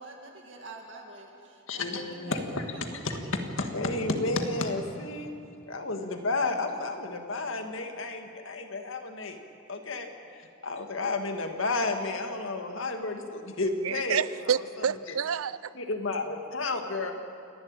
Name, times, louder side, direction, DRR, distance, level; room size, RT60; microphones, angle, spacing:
voice 1, 0.0-3.5, right 2 dB, 65° right, 2.3 m, -46 dB
voice 2, 1.7-3.2 3.6-5.3 5.7-9.4 9.7-10.1 10.6-14.2 15.8-17.1, left 3 dB, 70° left, 1.9 m, -31 dB
voice 3, 13.6-15.8, right 7 dB, 85° right, 0.5 m, -29 dB
28.5 x 11.5 x 8.8 m
head